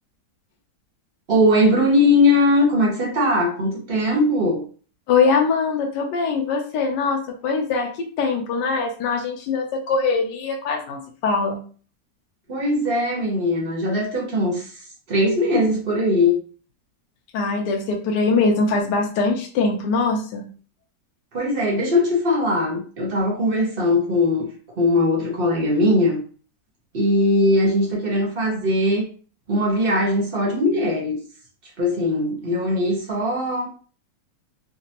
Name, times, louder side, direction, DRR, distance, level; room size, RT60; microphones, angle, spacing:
voice 1, 1.3-4.6 12.5-14.7 15.1-16.4 21.3-24.5 24.8-26.2 26.9-29.1 29.5-31.2 31.8-33.7, left 1 dB, 45° right, -2 dB, 0.8 m, -20 dB
voice 2, 5.1-11.6 17.3-20.4, left 4 dB, 75° left, 1 dB, 1.2 m, -22 dB
3.8 x 2.2 x 2.8 m, 0.41 s
omnidirectional pair, 2.0 m